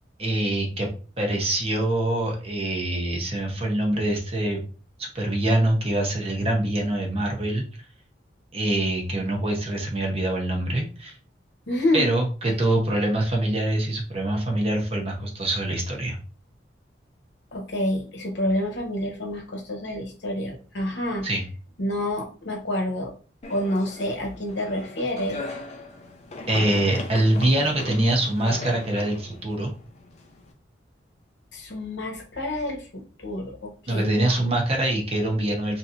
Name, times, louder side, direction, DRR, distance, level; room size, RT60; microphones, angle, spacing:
voice 1, 0.2-0.9 1.2-4.6 5.0-7.6 8.5-11.1 11.9-16.2 21.2-21.4 26.5-29.7 33.9-35.8, right 1 dB, 30° right, 1 dB, 0.7 m, -24 dB
voice 2, 11.7-12.1 17.5-21.3 21.8-23.1 23.5-25.6 31.5-34.4, left 1 dB, 70° left, 2 dB, 0.9 m, -28 dB
sound 1, 23.4-30.5, left 2 dB, 35° left, 0.4 m, -38 dB
3.2 x 2.8 x 2.4 m, 0.38 s
head